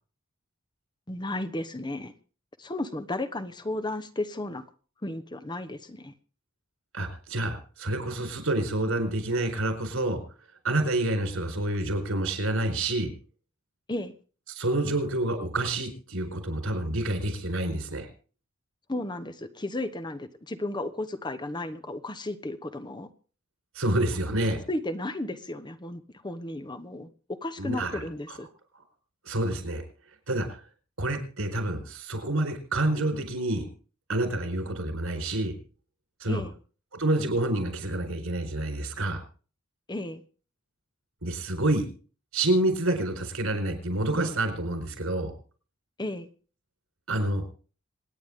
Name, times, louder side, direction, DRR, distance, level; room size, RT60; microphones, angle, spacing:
voice 1, 1.1-2.1 2.6-4.6 5.0-6.1 13.9-14.1 18.9-23.1 24.7-28.5 36.3-36.5 39.9-40.2 46.0-46.3, left 1 dB, 20° left, 10 dB, 0.9 m, -34 dB
voice 2, 6.9-10.2 10.6-13.1 14.5-18.1 23.7-24.6 27.6-28.4 29.2-29.8 30.3-30.6 31.0-33.6 34.1-35.5 36.2-36.4 36.9-39.2 41.2-41.9 42.3-45.3 47.1-47.4, right 1 dB, 85° right, 6 dB, 4.4 m, -28 dB
26.5 x 9.3 x 3.6 m, 0.38 s
head